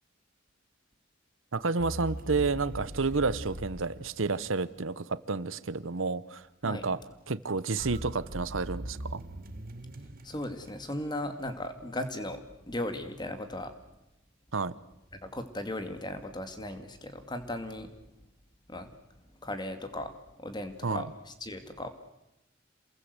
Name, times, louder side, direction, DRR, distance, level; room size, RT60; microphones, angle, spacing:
voice 1, 1.5-7.0 7.3-9.2 14.5-14.7 20.8-21.0, right 4 dB, 80° right, 17 dB, 1.0 m, -30 dB
sound 1, 1.8-4.8 7.8-11.2, right 1 dB, 45° right, 1.6 m, -41 dB
voice 2, 10.2-13.7 15.2-17.9 18.7-18.9 19.4-21.9, left 1 dB, 20° left, 8 dB, 2.3 m, -37 dB
28.0 x 21.0 x 8.1 m, 0.90 s
head